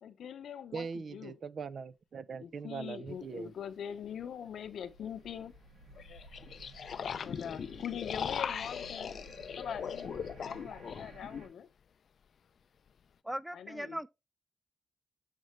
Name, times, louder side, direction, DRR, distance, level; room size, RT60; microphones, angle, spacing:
voice 1, 0.0-1.3 2.4-5.5 7.2-9.1 9.6-10.2 10.4-11.7 13.5-14.0, left 8 dB, 85° left, 0.7 m, -42 dB
voice 2, 0.7-3.5, right 5 dB, 65° right, 0.4 m, -41 dB
sound 1, 3.1-3.2 6.0-11.5, left 7 dB, 70° left, 0.4 m, -39 dB
sound 2, 3.6-11.5, right 1 dB, 85° right, 2.2 m, -54 dB
voice 3, 13.2-14.1, right 1 dB, 5° right, 0.4 m, -38 dB
7.5 x 5.3 x 3.1 m
cardioid pair, 75°, 0 cm